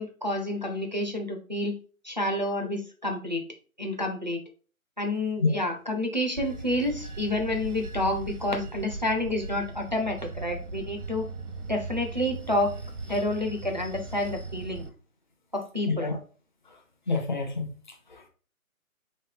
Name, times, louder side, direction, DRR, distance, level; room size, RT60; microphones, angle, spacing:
voice 1, 0.0-1.8 2.0-3.4 3.8-4.4 5.0-11.3 11.7-12.7 13.1-14.9 15.5-16.1, left 1 dB, 35° right, 0.4 m, -29 dB
Bell / Train, 6.4-14.9, right 3 dB, 80° right, 0.8 m, -38 dB
voice 2, 15.8-16.2 16.7-16.8 17.1-18.3, left 3 dB, 35° left, 0.6 m, -29 dB
3.5 x 3.2 x 3.6 m
figure-of-eight pair, 150°, 43 cm